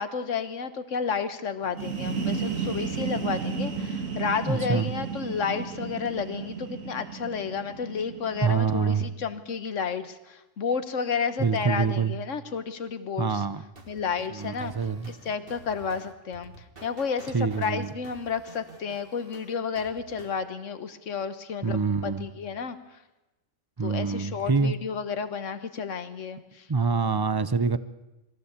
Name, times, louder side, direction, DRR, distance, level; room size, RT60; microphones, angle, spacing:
voice 1, 0.0-13.4 13.9-14.7 15.1-16.5 16.8-22.8 23.8-26.7, left 6 dB, 70° left, 11 dB, 1.6 m, -31 dB
sound 1, 1.6-9.2, right 6 dB, 85° right, 2.3 m, -33 dB
voice 2, 4.5-4.9 8.4-9.0 11.4-12.1 13.2-13.6 14.3-15.1 17.3-17.9 21.6-22.3 23.8-24.7 26.7-27.8, right 5 dB, 25° right, 14 dB, 0.5 m, -25 dB
sound 2, 13.7-20.4, right 3 dB, 45° right, 2.2 m, -49 dB
22.0 x 15.0 x 8.2 m, 1.0 s
omnidirectional pair, 1.3 m